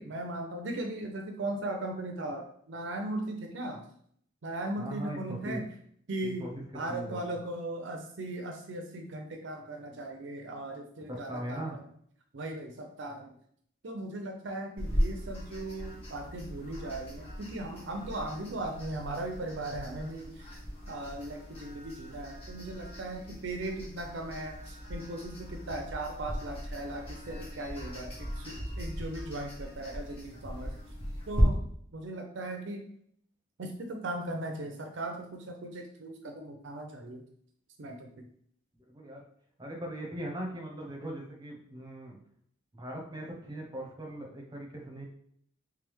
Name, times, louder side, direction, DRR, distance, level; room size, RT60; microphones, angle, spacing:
voice 1, 0.0-3.8 4.4-5.6 6.1-6.5 6.7-11.6 12.3-13.3 13.8-20.6 20.9-30.7 31.3-31.6 31.9-32.8 33.6-37.2 37.8-38.2, right 1 dB, 60° right, 4 dB, 0.5 m, -38 dB
voice 2, 4.8-5.6 6.2-6.5 6.9-7.3 11.1-11.8 38.9-39.2 39.6-42.2 42.7-45.1, right 1 dB, 20° right, -1 dB, 0.9 m, -40 dB
sound 1, 14.8-31.4, equal, 30° left, 1.2 m, -39 dB
3.4 x 3.3 x 3.4 m, 0.64 s
head